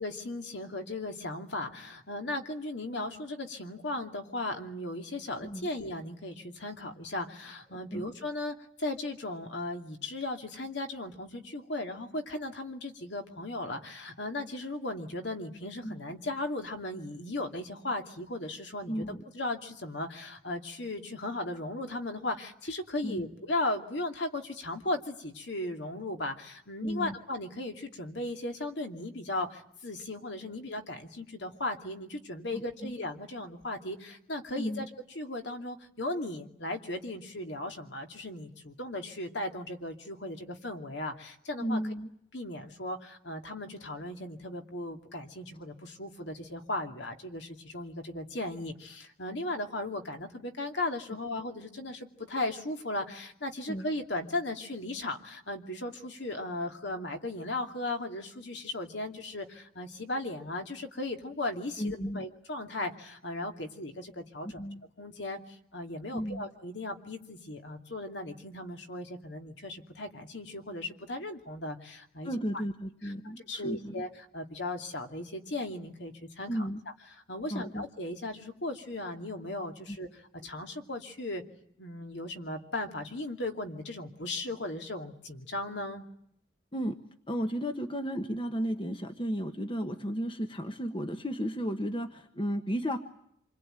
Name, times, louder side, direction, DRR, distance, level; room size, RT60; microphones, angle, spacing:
voice 1, 0.0-34.9 35.1-41.8 42.3-64.6 65.0-72.3 73.0-73.1 73.4-76.7 77.1-80.1 80.3-81.4 81.8-86.1, left 2 dB, 60° left, 5 dB, 2.6 m, -37 dB
voice 2, 18.9-19.2 23.0-23.2 26.8-27.1 32.5-32.9 34.6-34.9 41.6-42.1 53.7-53.9 61.8-62.2 64.4-64.8 66.1-66.5 72.2-73.9 76.5-76.8 77.5-77.8 79.9-80.0 86.7-87.0 87.3-93.0, equal, 25° left, 7 dB, 1.3 m, -34 dB
27.5 x 21.5 x 9.1 m, 0.72 s
head